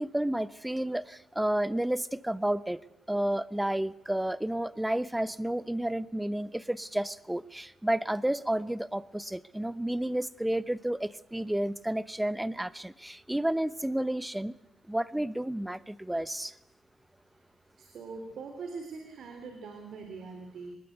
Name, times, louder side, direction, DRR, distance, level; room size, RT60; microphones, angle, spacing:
voice 1, 0.0-2.8 3.1-14.6 14.9-16.5, right 1 dB, 5° right, 17 dB, 0.9 m, -31 dB
voice 2, 17.8-20.8, right 4 dB, 65° right, 5 dB, 3.6 m, -42 dB
24.0 x 20.5 x 8.2 m, 0.89 s
cardioid pair, 90°, 0 cm